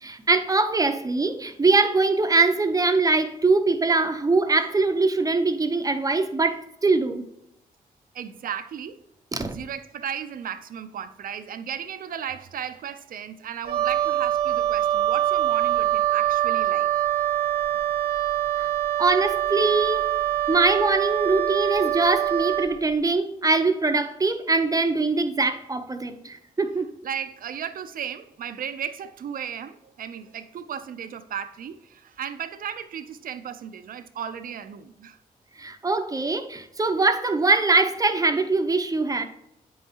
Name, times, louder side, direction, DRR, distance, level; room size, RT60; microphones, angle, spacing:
voice 1, 0.0-7.2 9.3-9.6 18.6-18.7 19.0-20.1 20.5-26.9 35.6-39.2, right 3 dB, 25° right, 0.8 m, -22 dB
voice 2, 8.1-9.0 9.4-16.9 27.0-35.2 38.3-38.4, right 8 dB, 70° right, 0.6 m, -35 dB
Wind instrument woodwind instrument, 13.6-22.8, right 12 dB, 85° right, 1.1 m, -24 dB
8.8 x 5.5 x 2.9 m
cardioid pair, 70°, 15 cm